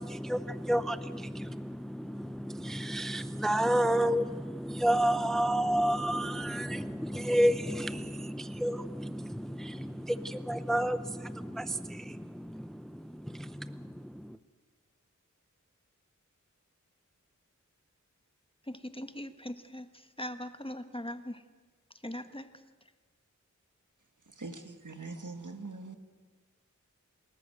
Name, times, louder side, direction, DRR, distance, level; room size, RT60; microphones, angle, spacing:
voice 1, 0.0-14.4, equal, ahead, 12 dB, 0.7 m, -31 dB
voice 2, 18.7-21.4 22.0-22.5, left 1 dB, 15° left, 9 dB, 1.4 m, -40 dB
voice 3, 24.4-26.0, right 3 dB, 75° right, 6 dB, 2.0 m, -42 dB
28.5 x 13.5 x 8.0 m, 1.4 s
wide cardioid pair, 45°, 31 cm